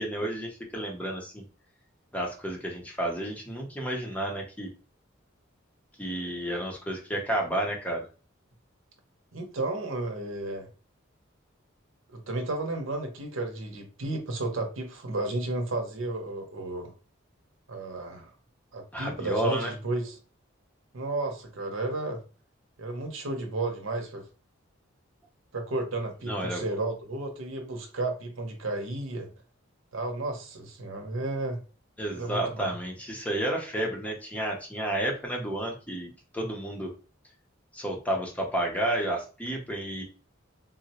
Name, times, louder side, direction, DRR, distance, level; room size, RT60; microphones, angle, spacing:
voice 1, 0.0-1.4 2.1-4.7 6.0-8.0 18.9-19.7 26.3-26.6 32.0-36.9 37.7-40.0, right 1 dB, 5° left, 0.6 m, -31 dB
voice 2, 9.3-10.7 12.1-16.9 17.7-18.3 18.7-20.1 20.9-22.2 22.8-24.2 25.5-29.3 29.9-31.6 32.1-32.7, right 2 dB, 75° right, 0.8 m, -33 dB
3.8 x 2.1 x 2.8 m
head